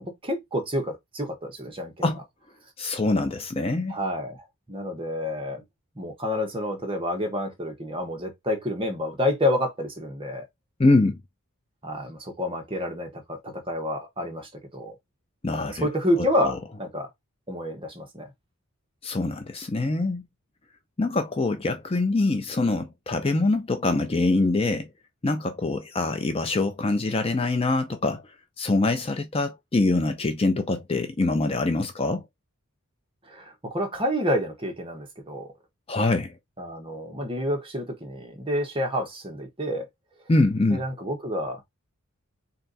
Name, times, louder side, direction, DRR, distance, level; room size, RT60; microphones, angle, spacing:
voice 1, 0.0-2.1 3.9-5.6 5.9-10.4 11.8-14.9 15.7-17.1 17.5-18.3 33.3-35.5 36.6-39.9 40.7-41.6, left 1 dB, 25° right, 1.5 m, -29 dB
voice 2, 2.8-3.9 10.8-11.2 15.4-15.9 16.2-16.3 19.0-20.2 21.0-24.9 25.2-28.2 28.6-32.2 35.9-36.3 40.3-40.8, left 2 dB, 25° left, 0.5 m, -24 dB
3.9 x 3.4 x 4.0 m
head